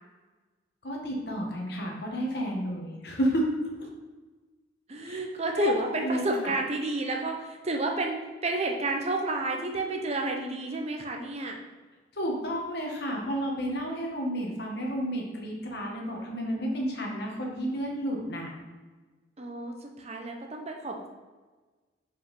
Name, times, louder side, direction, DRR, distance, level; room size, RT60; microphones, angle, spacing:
voice 1, 0.8-3.4 5.0-5.2 5.6-5.7 6.0-6.2 12.1-18.5, equal, 55° left, -1 dB, 1.6 m, -31 dB
voice 2, 4.9-11.6 19.4-21.1, right 2 dB, 30° right, 2 dB, 0.8 m, -30 dB
5.5 x 5.2 x 5.3 m, 1.3 s
head